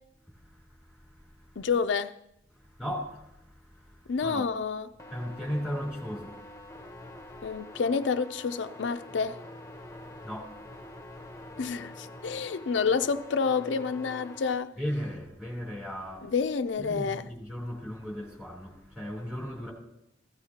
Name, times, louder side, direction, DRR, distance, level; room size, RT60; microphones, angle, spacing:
voice 1, 0.3-1.7 2.5-4.5 5.1-7.6 10.0-11.7 14.8-16.3 16.8-19.7, equal, 5° right, 3.3 m, -38 dB
voice 2, 1.6-2.1 4.1-4.9 7.4-9.4 11.6-14.7 16.2-17.3, left 5 dB, 85° left, 0.5 m, -29 dB
sound 1, 5.0-14.5, left 1 dB, 15° left, 0.9 m, -46 dB
15.5 x 14.5 x 2.9 m
head